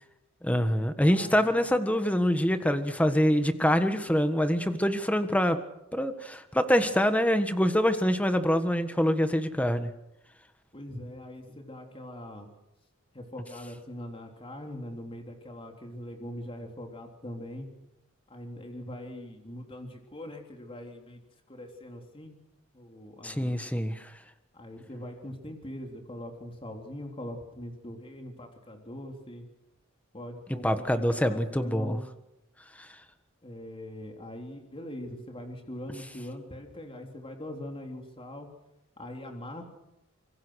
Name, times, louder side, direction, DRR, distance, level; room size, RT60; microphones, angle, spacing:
voice 1, 0.4-5.6 5.9-9.9 23.2-24.0 30.6-32.0, equal, 5° left, 9 dB, 1.5 m, -25 dB
voice 2, 1.1-1.7 10.7-12.5 13.1-17.7 18.3-21.2 21.5-22.4 22.7-23.6 24.5-29.4 30.1-32.0 33.4-38.5 39.0-39.6, left 1 dB, 25° left, 3 dB, 3.5 m, -42 dB
26.0 x 24.0 x 6.5 m, 0.87 s
head